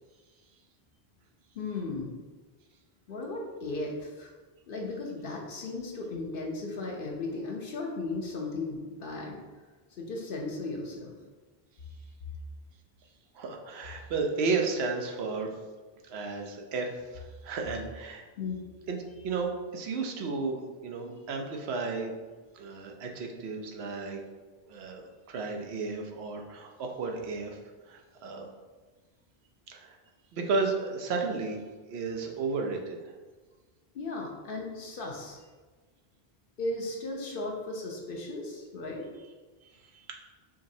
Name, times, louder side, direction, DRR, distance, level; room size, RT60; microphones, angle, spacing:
voice 1, 1.5-2.1 3.1-4.3 4.7-9.4 10.0-11.1 18.4-18.6 33.9-35.4 36.6-39.1, left 2 dB, 65° left, -1 dB, 0.8 m, -36 dB
voice 2, 13.3-15.5 16.0-18.2 18.9-22.3 22.5-24.2 24.7-27.6 27.8-28.5 29.7-30.0 30.3-33.2 39.6-40.2, right 4 dB, 90° right, 3 dB, 0.9 m, -33 dB
4.9 x 3.0 x 2.7 m, 1.4 s
omnidirectional pair, 1.0 m